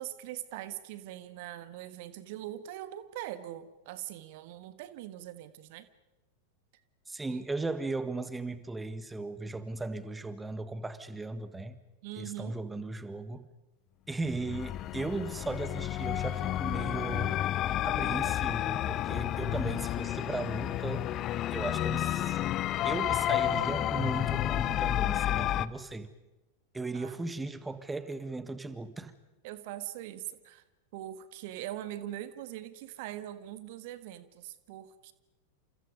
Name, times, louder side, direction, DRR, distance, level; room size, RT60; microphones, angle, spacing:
voice 1, 0.0-5.9 7.3-7.4 12.0-12.6 26.9-27.2 29.4-30.6 30.9-35.1, right 13 dB, 50° right, 13 dB, 1.6 m, -42 dB
voice 2, 7.1-11.8 12.2-13.5 14.1-17.4 17.8-21.1 21.5-22.4 22.8-26.1 26.7-29.1, right 3 dB, 10° right, 13 dB, 1.5 m, -37 dB
sound 1, 14.2-25.7, left 13 dB, 35° left, 0.8 m, -31 dB
29.5 x 29.0 x 5.4 m, 1.0 s
figure-of-eight pair, 90°, 0 cm